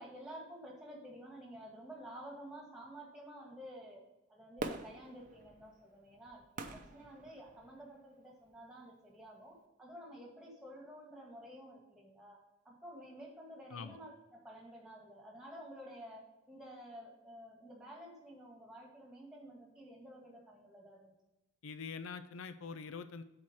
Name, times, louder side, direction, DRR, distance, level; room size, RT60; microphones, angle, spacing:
voice 1, 0.0-21.1, equal, 5° right, -2 dB, 1.9 m, -51 dB
Fireworks, 4.6-7.9 8.5-8.6, right 3 dB, 40° right, 0.7 m, -45 dB
voice 2, 21.6-23.2, left 5 dB, 75° left, 11 dB, 0.5 m, -44 dB
7.5 x 4.3 x 6.2 m, 0.97 s
head